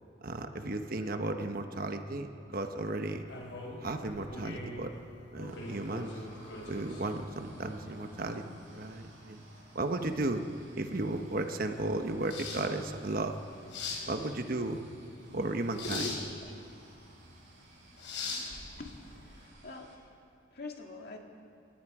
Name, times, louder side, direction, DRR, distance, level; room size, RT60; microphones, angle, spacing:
voice 1, 0.2-3.2 3.8-4.9 5.3-6.1 6.7-9.4 9.7-10.4 10.7-13.3 14.1-14.8 15.3-16.1, right 2 dB, 50° right, 6 dB, 1.1 m, -34 dB
sound 1, 3.2-19.4, left 3 dB, 75° left, 4.4 m, -43 dB
sound 2, 5.4-19.9, right 2 dB, 80° right, 6.9 m, -59 dB
voice 2, 15.8-16.5 18.8-19.9 20.5-21.2, left 2 dB, 55° left, 2 dB, 2.2 m, -42 dB
29.5 x 18.0 x 4.9 m, 2.5 s
head